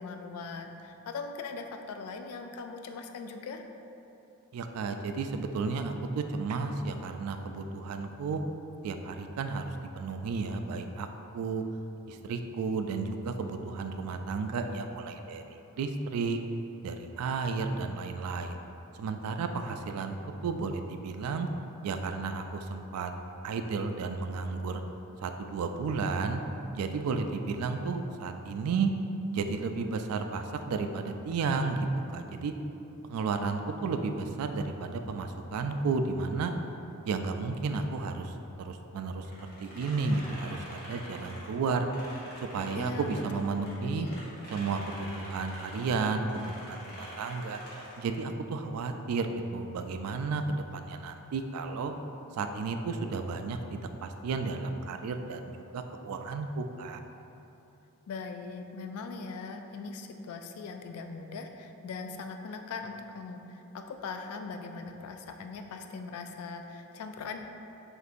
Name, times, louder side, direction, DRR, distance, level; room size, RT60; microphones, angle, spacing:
voice 1, 0.0-3.7 42.7-43.2 43.8-44.2 58.1-63.4 63.7-67.4, left 4 dB, 80° left, 5 dB, 0.3 m, -40 dB
voice 2, 4.5-8.4 8.8-11.1 11.3-11.6 12.1-16.4 16.8-18.6 19.0-20.2 20.4-21.5 21.8-23.1 23.4-24.8 25.2-26.4 26.7-28.9 29.3-31.9 32.1-32.5 33.1-36.5 37.1-38.3 38.6-39.2 39.6-41.9 42.5-44.1 44.5-47.6 48.0-51.9 52.4-55.4 55.7-57.0, right 4 dB, 85° right, 7 dB, 0.3 m, -32 dB
sound 1, 39.2-43.7 44.0-48.1, equal, 40° left, 1.0 m, -46 dB
6.5 x 2.6 x 2.5 m, 3.0 s
head